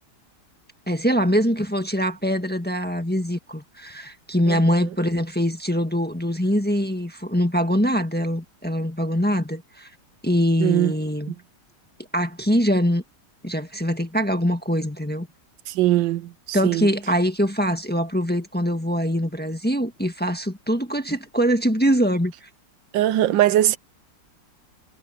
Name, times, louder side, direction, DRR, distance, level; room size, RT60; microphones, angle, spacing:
voice 1, 0.9-9.9 10.2-11.3 12.1-13.0 13.4-15.3 16.5-22.5, equal, 5° left, 1.4 m, -23 dB
voice 2, 10.6-10.9 11.3-11.4 15.7-16.9 22.9-23.8, right 13 dB, 85° right, 1.4 m, -21 dB
omnidirectional pair, 2.0 m